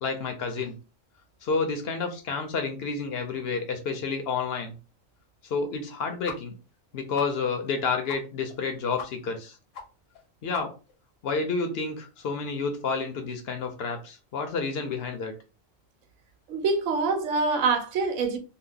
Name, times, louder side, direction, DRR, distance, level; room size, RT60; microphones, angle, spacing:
voice 1, 0.0-0.8 1.4-4.7 5.4-6.5 6.9-9.6 10.4-10.7 11.2-15.3, left 4 dB, 60° left, 0.7 m, -30 dB
sound 1, 6.2-6.4 6.7-6.8 7.1-7.3 7.7-7.8 8.1-8.2 8.5-8.6 9.0-9.1 9.4-9.5 9.7-9.8 10.1-10.2 10.5-10.9, left 7 dB, 80° left, 1.1 m, -38 dB
voice 2, 16.5-18.4, right 4 dB, 80° right, 1.0 m, -25 dB
2.8 x 2.0 x 3.7 m
omnidirectional pair, 1.3 m